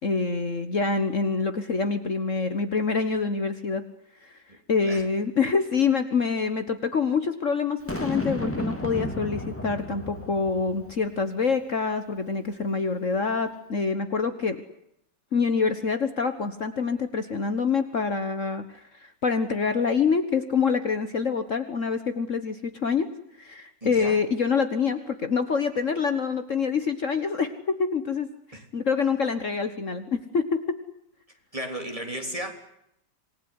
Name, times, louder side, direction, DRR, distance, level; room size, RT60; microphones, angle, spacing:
voice 1, 0.0-3.8 4.2-4.4 4.7-14.6 15.3-23.1 23.4-28.3 28.5-30.8, left 5 dB, 45° left, 9 dB, 1.7 m, -26 dB
Boom, 7.9-11.2, left 1 dB, 5° left, 2.8 m, -33 dB
voice 2, 23.8-24.2 28.5-28.6 31.5-32.5, right 1 dB, 20° right, 4 dB, 3.4 m, -34 dB
27.0 x 19.5 x 9.9 m, 0.79 s
omnidirectional pair, 1.9 m